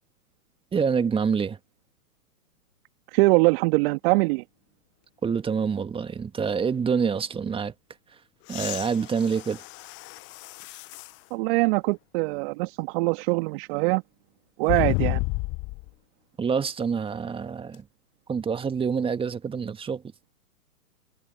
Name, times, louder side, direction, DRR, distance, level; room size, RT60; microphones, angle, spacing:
voice 1, 0.7-1.6 5.2-7.7 8.5-9.6 16.4-17.8 18.3-20.0, right 6 dB, 10° right, 1.9 m, -26 dB
voice 2, 3.1-4.4 11.3-14.0 14.6-15.2, right 26 dB, 40° right, 2.1 m, -23 dB
sound 1, 8.4-11.2 11.9-12.0 14.7-15.9 17.7-17.8, left 25 dB, 25° left, 0.9 m, -31 dB
hypercardioid pair, 115°, 46 cm